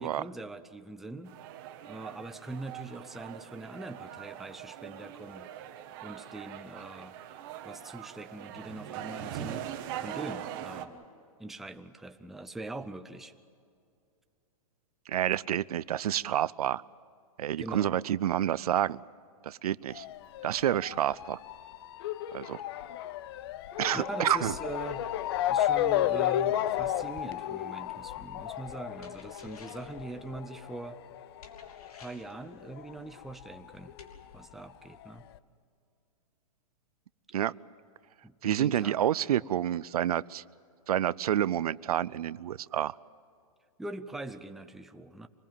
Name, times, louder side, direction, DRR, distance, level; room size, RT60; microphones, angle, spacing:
voice 1, 0.0-1.4 1.8-5.5 6.0-7.2 7.6-11.0 11.4-13.3 17.6-18.0 23.9-25.0 25.5-31.0 32.0-34.0 34.3-35.3 38.2-39.0 43.8-45.3, right 2 dB, ahead, 8 dB, 0.5 m, -42 dB
sound 1, 1.3-10.8, right 10 dB, 35° right, 1.4 m, -42 dB
voice 2, 15.1-16.8 17.4-19.0 19.4-20.0 20.4-21.4 22.3-22.6 23.8-24.5 37.3-37.5 38.4-40.4 40.9-42.9, right 11 dB, 80° right, 21 dB, 0.5 m, -29 dB
Motor vehicle (road) / Siren, 19.9-32.9 33.2-34.4 35.0-35.1 35.3-35.4, left 12 dB, 40° left, 0.7 m, -33 dB
sound 2, 29.0-30.0 31.4-32.4 34.0-34.1, left 4 dB, 75° left, 3.3 m, -54 dB
25.0 x 20.0 x 7.6 m, 2.5 s
hypercardioid pair, 160°, 19 cm